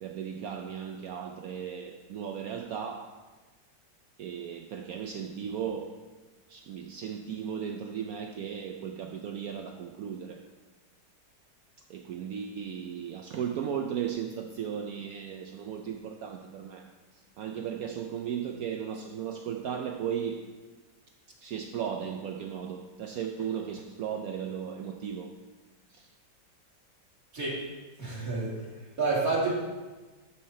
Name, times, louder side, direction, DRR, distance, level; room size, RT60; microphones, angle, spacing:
voice 1, 0.0-3.1 4.2-6.0 6.5-10.4 11.9-16.8 17.1-20.4 21.4-25.3 25.9-26.1, right 8 dB, 70° right, 4 dB, 0.8 m, -36 dB
voice 2, 28.0-28.5 29.0-29.6, right 3 dB, 50° right, -6 dB, 2.6 m, -28 dB
12.0 x 4.3 x 4.2 m, 1.3 s
omnidirectional pair, 2.0 m